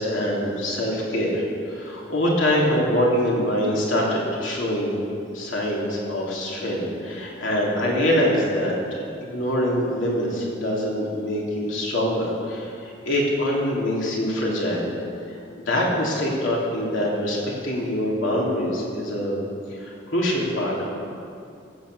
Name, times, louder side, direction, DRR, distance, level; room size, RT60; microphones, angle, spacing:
voice 1, 0.0-5.0 5.3-14.9 15.3-19.4 19.7-20.9, equal, 90° left, -3 dB, 3.0 m, -24 dB
14.5 x 7.5 x 7.1 m, 2.4 s
head